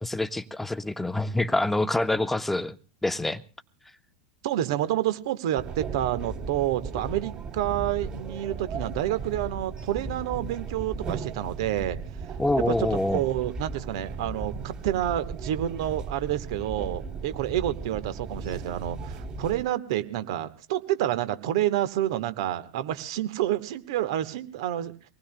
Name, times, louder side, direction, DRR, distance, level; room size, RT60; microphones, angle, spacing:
voice 1, 0.0-2.8 3.0-3.4 12.4-13.2, left 2 dB, 5° left, 0.8 m, -26 dB
voice 2, 4.4-12.0 12.6-12.7 13.1-25.1, right 12 dB, 65° right, 1.3 m, -29 dB
sound 1, 5.6-19.6, right 4 dB, 30° right, 3.4 m, -36 dB
25.0 x 19.5 x 2.2 m
hypercardioid pair, 90°, 3 cm